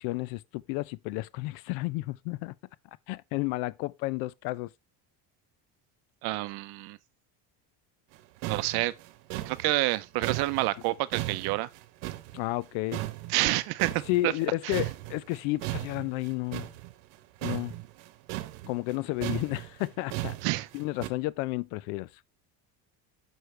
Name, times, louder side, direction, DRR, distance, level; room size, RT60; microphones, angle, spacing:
voice 1, 0.0-2.5 3.1-4.7 12.3-13.0 14.1-16.7 17.4-17.7 18.6-20.4 20.7-22.1, left 19 dB, 80° left, 0.6 m, -32 dB
voice 2, 6.2-7.0 8.4-8.9 9.5-11.7 13.3-14.3 14.6-14.7 20.4-20.7, right 19 dB, 60° right, 0.6 m, -28 dB
sound 1, 8.1-8.2 8.4-12.7 12.9-14.5 14.7-21.1, right 17 dB, 85° right, 1.0 m, -36 dB
6.5 x 6.4 x 3.2 m
cardioid pair, 160°, 43 cm